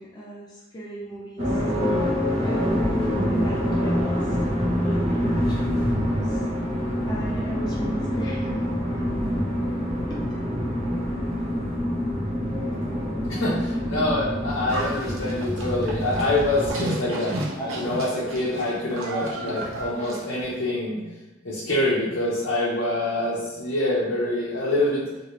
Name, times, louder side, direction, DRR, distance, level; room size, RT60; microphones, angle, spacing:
voice 1, 0.0-2.0 2.4-2.6 3.3-4.4 4.7-6.4 7.0-9.0 10.1-10.2 17.6-18.5, right 1 dB, 20° left, -6 dB, 0.4 m, -36 dB
sound 1, 1.4-16.7, equal, 35° right, 0.9 m, -26 dB
voice 2, 13.3-17.4 17.7-21.0 21.4-25.0, left 1 dB, 60° left, -8 dB, 0.6 m, -25 dB
Livestock farm animals working animals, 14.7-20.5, right 2 dB, 90° right, 0.7 m, -33 dB
2.6 x 2.5 x 3.0 m, 1.1 s
head